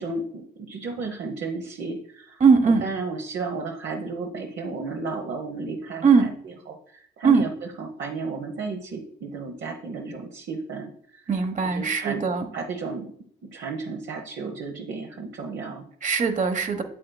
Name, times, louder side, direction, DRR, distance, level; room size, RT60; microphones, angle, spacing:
voice 1, 0.0-11.2 11.6-12.2 12.5-13.1 13.4-15.8, right 4 dB, 70° right, 1 dB, 1.1 m, -33 dB
voice 2, 2.4-2.9 6.0-6.3 7.2-7.4 11.3-12.5 16.0-16.8, right 5 dB, 40° right, 7 dB, 1.2 m, -20 dB
8.4 x 7.8 x 2.3 m, 0.63 s
cardioid pair, 90°, 20 cm